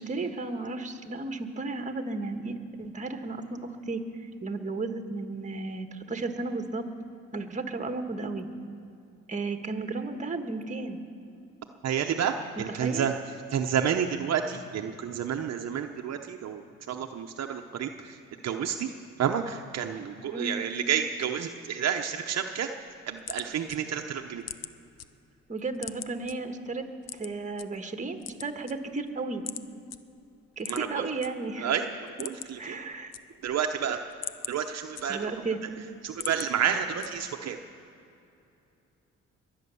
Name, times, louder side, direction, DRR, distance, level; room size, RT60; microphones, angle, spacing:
voice 1, 0.0-4.0 4.4-6.8 7.3-8.5 9.3-11.0 12.8-13.1 20.3-20.6 25.5-26.9 27.1-29.4 30.6-31.7 32.6-33.1 35.1-35.6, right 3 dB, 25° right, 6 dB, 1.4 m, -34 dB
voice 2, 11.8-13.1 13.5-16.6 16.9-18.9 19.2-22.7 23.1-24.4 30.7-31.0 31.6-31.9 32.2-32.8 33.4-34.0 34.5-35.3 36.0-37.6, right 8 dB, 60° right, 4 dB, 0.8 m, -30 dB
sound 1, 22.8-25.1 25.4-26.3 27.0-27.7 28.1-29.1 29.5-29.6 29.9-30.0 30.6-31.3 31.6-31.7 32.0-32.7 32.9-33.6 34.0-35.5 35.9-36.5 37.0-37.4, left 10 dB, 60° left, 0.7 m, -40 dB
22.0 x 9.0 x 7.0 m, 2.7 s
cardioid pair, 90°, 30 cm